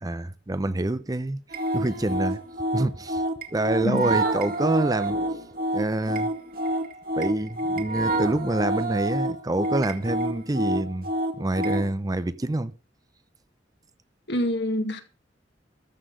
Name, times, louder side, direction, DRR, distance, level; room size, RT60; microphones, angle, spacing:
voice 1, 0.0-1.4 1.7-2.4 2.7-3.2 3.5-5.2 5.7-6.3 7.2-11.1 11.4-12.7, right 2 dB, 20° right, 0.6 m, -26 dB
sound 1, 1.5-11.9, right 1 dB, 55° right, 2.2 m, -28 dB
voice 2, 14.3-15.0, left 1 dB, 70° left, 2.3 m, -26 dB
14.0 x 5.9 x 7.8 m
head